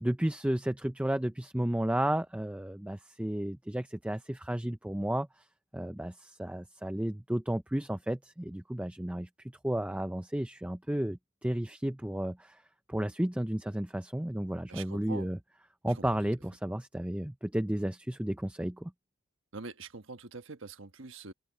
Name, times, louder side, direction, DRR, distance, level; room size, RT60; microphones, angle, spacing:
voice 1, 0.0-5.5 5.7-12.6 12.9-15.4 15.8-18.9, right 1 dB, 5° right, 0.4 m, -33 dB
voice 2, 14.7-15.3 19.5-21.3, right 4 dB, 60° right, 1.3 m, -44 dB
open air
head